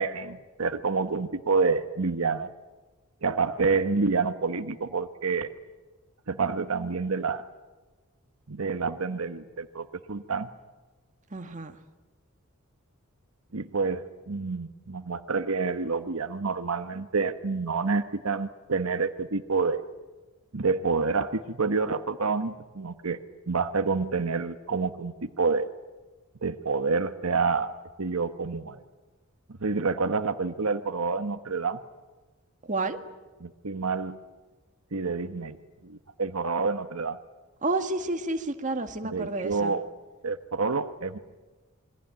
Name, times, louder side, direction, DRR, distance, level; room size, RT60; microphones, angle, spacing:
voice 1, 0.0-2.5 3.2-5.5 6.3-7.4 8.5-10.5 13.5-19.8 20.5-23.2 23.5-25.7 26.4-27.7 28.0-28.8 29.6-31.8 33.4-34.2 34.9-35.6 35.8-37.2 39.0-39.9 40.2-41.2, right 4 dB, 75° right, 9 dB, 1.2 m, -28 dB
voice 2, 11.3-11.8 32.7-33.0 37.6-39.8, right 2 dB, 35° right, 6 dB, 2.0 m, -30 dB
27.5 x 23.0 x 9.0 m, 1.2 s
head